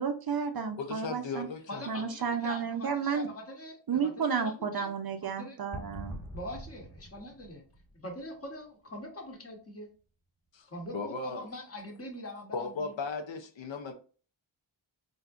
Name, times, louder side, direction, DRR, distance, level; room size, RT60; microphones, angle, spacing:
voice 1, 0.0-1.5 1.9-3.3 3.9-6.1, right 6 dB, 50° right, 0.5 m, -32 dB
voice 2, 0.8-1.8 10.5-10.7 10.9-11.4 12.5-13.9, left 4 dB, 65° left, 0.6 m, -36 dB
voice 3, 1.7-4.9 5.2-5.6 6.3-7.6 7.9-9.9 10.7-13.0, left 1 dB, 30° left, 0.9 m, -43 dB
sound 1, 5.7-8.4, right 1 dB, ahead, 1.1 m, -44 dB
3.5 x 2.6 x 2.3 m
wide cardioid pair, 115°, 49 cm